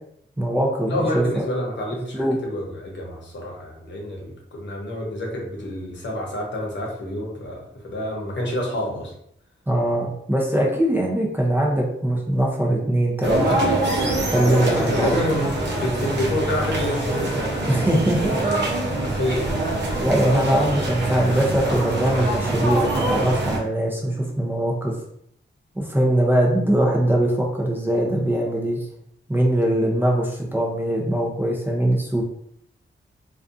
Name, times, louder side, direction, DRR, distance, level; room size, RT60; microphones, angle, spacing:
voice 1, 0.4-1.4 2.1-2.4 9.7-13.6 14.3-15.2 17.7-18.4 20.0-24.9 25.8-28.9 29.3-32.2, right 1 dB, 10° right, -2 dB, 0.5 m, -21 dB
voice 2, 0.9-9.1 14.4-17.9 19.0-19.7, left 1 dB, 65° left, -2 dB, 0.8 m, -28 dB
sound 1, 13.2-23.6, right 2 dB, 60° right, 0.7 m, -24 dB
2.5 x 2.3 x 2.4 m, 0.70 s
wide cardioid pair, 110°, 20 cm